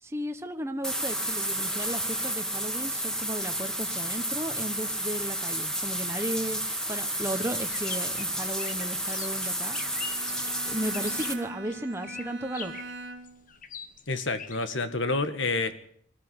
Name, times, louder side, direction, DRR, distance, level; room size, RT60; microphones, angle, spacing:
voice 1, 0.0-10.1 10.7-12.8, right 1 dB, 15° right, 6 dB, 1.2 m, -35 dB
sound 1, 0.8-11.3, right 1 dB, 5° left, 2.2 m, -31 dB
sound 2, 7.7-14.7, left 7 dB, 40° left, 1.3 m, -43 dB
Bowed string instrument, 9.4-13.5, right 2 dB, 60° right, 1.8 m, -43 dB
voice 2, 14.1-15.7, left 3 dB, 65° left, 10 dB, 2.0 m, -28 dB
20.5 x 14.0 x 9.8 m, 0.62 s
head